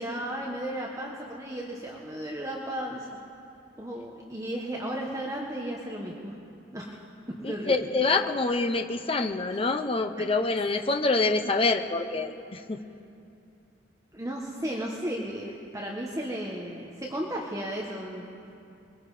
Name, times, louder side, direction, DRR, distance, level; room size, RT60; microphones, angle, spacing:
voice 1, 0.0-3.2 3.8-6.4 6.7-7.0 7.4-7.8 10.2-10.3 14.1-18.2, right 1 dB, 15° right, -2 dB, 1.5 m, -34 dB
voice 2, 7.4-12.8, left 3 dB, 30° left, 6 dB, 0.8 m, -26 dB
24.5 x 22.0 x 5.0 m, 2.6 s
head